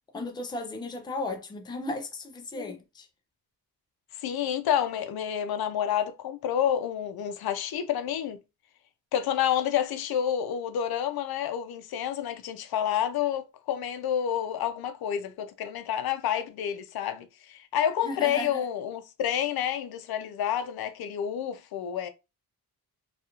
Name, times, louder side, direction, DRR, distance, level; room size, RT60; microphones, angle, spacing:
voice 1, 0.1-3.1 18.0-18.7, left 2 dB, 15° left, 0.3 m, -35 dB
voice 2, 4.1-8.4 9.1-22.1, left 10 dB, 90° left, 0.5 m, -29 dB
2.4 x 2.3 x 2.8 m
wide cardioid pair, 175°, 36 cm